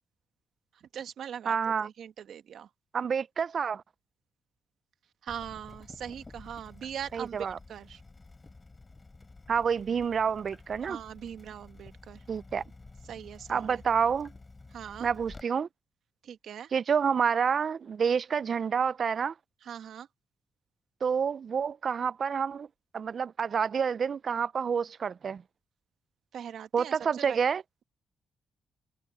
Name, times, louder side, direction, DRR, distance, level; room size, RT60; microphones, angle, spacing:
voice 1, 0.7-2.7 5.2-8.0 10.8-12.2 13.0-13.8 14.7-15.1 16.2-16.7 19.6-20.1 26.3-27.4, right 9 dB, 70° right, 1.6 m, -41 dB
voice 2, 1.5-1.9 2.9-3.8 7.1-7.6 9.5-11.0 12.3-12.6 13.5-14.3 15.0-15.7 16.7-19.3 21.0-22.7 22.9-25.4 26.7-27.6, right 6 dB, 45° right, 0.3 m, -28 dB
Water tap faucet / Drip, 5.3-15.4, left 3 dB, 20° left, 4.0 m, -51 dB
cardioid pair, 135°, 0 cm